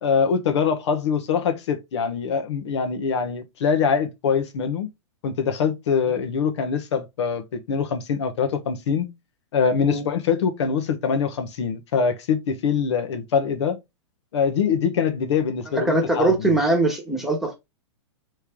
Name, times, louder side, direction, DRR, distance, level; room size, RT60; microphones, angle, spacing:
voice 1, 0.0-4.9 5.2-9.1 9.5-13.8 14.3-16.5, left 6 dB, 65° left, 1.1 m, -23 dB
voice 2, 15.7-17.6, right 2 dB, ahead, 1.3 m, -21 dB
4.4 x 3.4 x 3.6 m
hypercardioid pair, 150°, 16 cm